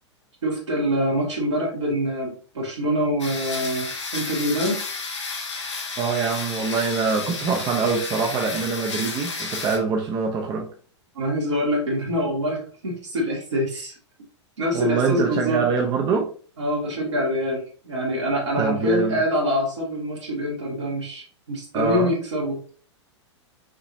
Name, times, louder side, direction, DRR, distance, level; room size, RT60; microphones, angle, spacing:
voice 1, 0.4-4.8 11.1-13.9 14.6-15.7 16.6-22.6, equal, 75° right, 2.2 m, -25 dB
sound 1, 3.2-9.8, left 4 dB, 75° left, 1.2 m, -32 dB
voice 2, 6.0-10.7 14.7-16.3 18.6-19.2 21.7-22.1, right 5 dB, 25° right, 0.8 m, -24 dB
6.1 x 3.0 x 2.7 m
figure-of-eight pair, 100°, 15 cm